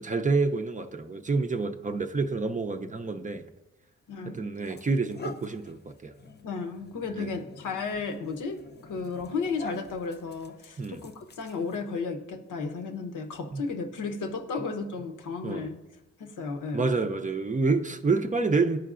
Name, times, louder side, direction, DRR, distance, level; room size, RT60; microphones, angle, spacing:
voice 1, 0.0-3.4 4.3-6.1 7.2-7.3 10.8-11.0 13.5-13.6 15.4-15.7 16.7-18.8, right 4 dB, 25° right, 0.5 m, -28 dB
sound 1, 3.8-4.0 4.6-12.0, left 3 dB, 35° left, 0.6 m, -47 dB
voice 2, 4.1-4.8 6.4-15.8 16.2-17.0, left 4 dB, 70° left, 0.9 m, -34 dB
11.5 x 4.5 x 2.5 m
cardioid pair, 60°, 31 cm